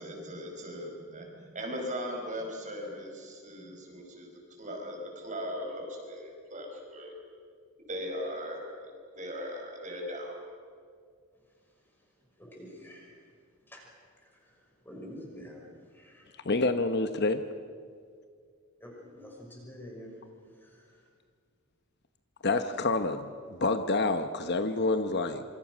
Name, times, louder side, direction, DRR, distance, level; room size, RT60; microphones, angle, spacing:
voice 1, 0.0-4.3 4.6-7.1 7.9-10.4, equal, 35° right, 1 dB, 5.5 m, -39 dB
voice 2, 11.5-16.5 18.8-21.1, equal, 10° left, -1 dB, 6.0 m, -49 dB
voice 3, 16.4-17.4 22.4-23.3 23.6-25.4, left 3 dB, 50° left, 9 dB, 1.0 m, -27 dB
27.0 x 25.0 x 6.2 m, 2.1 s
head